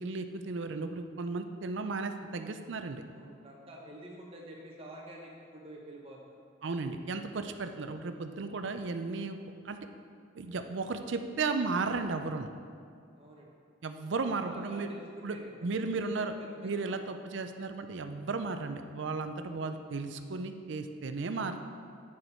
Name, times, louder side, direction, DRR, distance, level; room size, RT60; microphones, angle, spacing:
voice 1, 0.0-3.0 6.6-9.4 9.6-9.8 10.3-12.5 13.8-14.9 15.2-16.3 16.6-21.6, right 4 dB, 70° right, 7 dB, 0.5 m, -34 dB
voice 2, 3.1-6.4 13.1-13.5 14.4-15.7 16.0-16.3 16.6-17.0 17.4-17.5 19.9-20.0, right 1 dB, 30° right, -2 dB, 1.3 m, -49 dB
8.5 x 6.5 x 4.4 m, 2.3 s
head